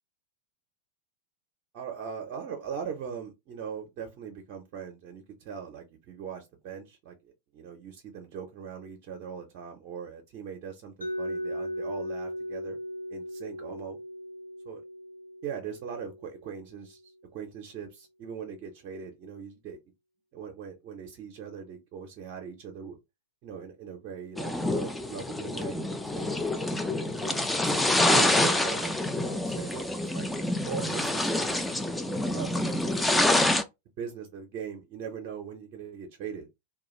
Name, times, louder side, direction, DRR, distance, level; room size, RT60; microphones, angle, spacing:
voice 1, 1.7-12.8 13.1-14.0 14.7-14.8 15.4-17.0 17.3-19.8 20.3-23.0 23.4-26.7 27.2-27.8 28.1-30.3 30.7-33.5 34.0-36.5, right 7 dB, 40° right, 0.6 m, -40 dB
Mallet percussion, 11.0-16.8, equal, 90° left, 0.4 m, -38 dB
sound 1, 24.4-33.6, left 1 dB, 5° left, 0.4 m, -27 dB
2.3 x 2.2 x 3.0 m
figure-of-eight pair, 90°, 0 cm